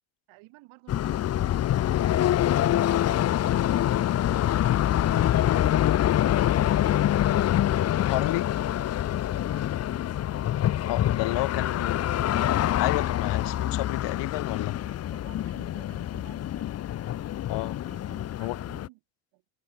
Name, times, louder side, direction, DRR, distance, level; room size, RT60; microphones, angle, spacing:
voice 1, 0.3-2.2 7.7-8.2 9.4-10.2 11.2-11.5 11.7-11.8 14.8-17.1 17.8-19.0 19.3-19.4, right 24 dB, 70° right, 7.9 m, -56 dB
sound 1, 0.9-18.9, left 12 dB, 30° left, 0.7 m, -25 dB
voice 2, 8.1-8.5 10.9-12.0 12.8-14.8 17.5-17.8 18.4-18.6, left 19 dB, 60° left, 1.7 m, -30 dB
supercardioid pair, 105°, 48 cm